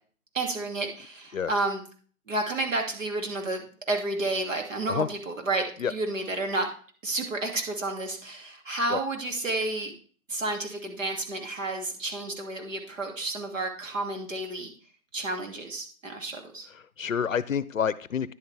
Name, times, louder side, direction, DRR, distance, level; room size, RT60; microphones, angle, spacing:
voice 1, 0.3-1.8 2.3-6.7 7.0-9.9 10.3-14.7 15.1-16.7, right 2 dB, 60° right, 3 dB, 2.6 m, -31 dB
voice 2, 16.7-18.3, left 7 dB, 65° left, 18 dB, 0.7 m, -28 dB
10.5 x 7.8 x 3.4 m, 0.42 s
figure-of-eight pair, 150°, 43 cm